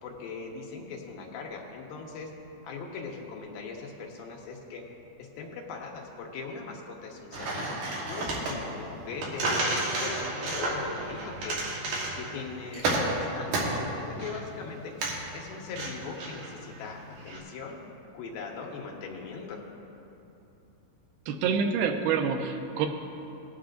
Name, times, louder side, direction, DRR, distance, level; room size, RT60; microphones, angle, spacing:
voice 1, 0.0-2.3 2.6-4.8 5.2-7.8 8.1-11.6 12.1-14.9 15.3-17.8 18.1-19.6, left 4 dB, 80° left, -1 dB, 3.0 m, -40 dB
sound 1, 7.3-17.4, right 2 dB, 65° right, 2.8 m, -32 dB
voice 2, 21.3-22.9, right 6 dB, 85° right, 4 dB, 2.6 m, -27 dB
19.0 x 9.4 x 2.5 m, 2.9 s
omnidirectional pair, 4.3 m